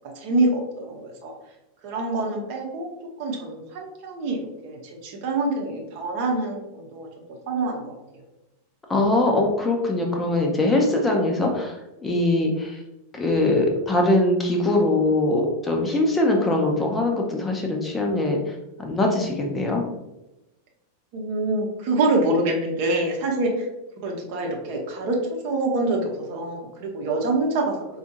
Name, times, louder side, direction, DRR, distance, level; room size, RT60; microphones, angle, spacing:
voice 1, 0.1-1.3 1.8-2.9 3.2-7.1 7.5-8.0 21.1-23.7 24.0-27.8, right 2 dB, 45° right, 1 dB, 0.8 m, -25 dB
voice 2, 8.9-11.7 12.0-12.8 13.1-18.4 18.8-19.8, left 2 dB, 15° left, 1 dB, 0.6 m, -22 dB
4.3 x 2.3 x 2.8 m, 0.94 s
figure-of-eight pair, 90°, 0 cm